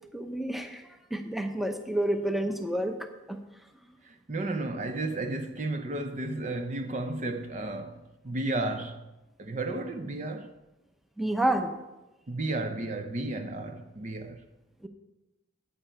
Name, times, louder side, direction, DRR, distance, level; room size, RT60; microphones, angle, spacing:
voice 1, 0.1-0.8 1.1-3.4 11.2-11.7 14.8-14.9, right 1 dB, ahead, 0.7 m, -29 dB
voice 2, 4.0-9.0 9.4-10.5 12.3-14.4, right 2 dB, 35° right, 0.5 m, -33 dB
13.5 x 9.0 x 4.5 m
head